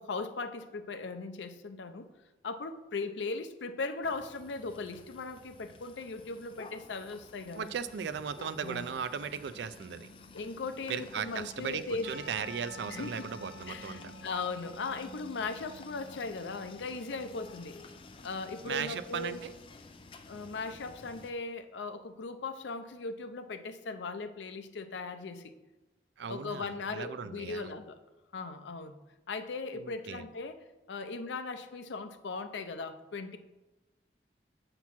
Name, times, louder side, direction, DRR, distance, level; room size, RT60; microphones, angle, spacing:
voice 1, 0.0-2.1 2.4-7.7 8.6-9.0 10.3-12.1 12.8-13.3 13.7-17.8 18.2-19.4 20.3-25.5 26.3-28.0 28.3-29.0 29.3-33.4, left 4 dB, 90° left, 8 dB, 0.5 m, -38 dB
sound 1, 4.0-21.3, left 2 dB, 30° left, 0.3 m, -51 dB
voice 2, 7.6-10.1 10.9-11.8 12.1-14.1 18.6-19.5 26.2-27.7 29.8-30.2, right 6 dB, 75° right, 13 dB, 0.4 m, -37 dB
Percussion / Church bell, 12.0-15.7, left 2 dB, 60° right, 1.0 m, -50 dB
7.1 x 2.9 x 5.9 m, 1.1 s
head